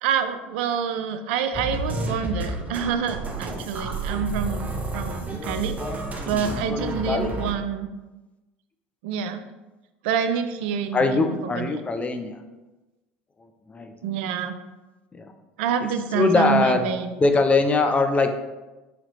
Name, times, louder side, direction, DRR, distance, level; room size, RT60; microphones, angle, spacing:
voice 1, 0.0-5.8 6.3-7.9 9.0-9.4 10.0-11.7 14.0-14.6 15.6-17.2, right 7 dB, 75° right, 9 dB, 0.3 m, -27 dB
sound 1, 1.5-7.5, right 2 dB, 25° right, 0.6 m, -31 dB
voice 2, 5.3-7.3 10.9-12.4 13.4-13.9 15.1-15.3 15.8-15.9 16.1-16.9 17.2-18.3, left 3 dB, 20° left, 6 dB, 0.5 m, -23 dB
4.0 x 2.8 x 3.0 m, 1.1 s
hypercardioid pair, 80°, 6 cm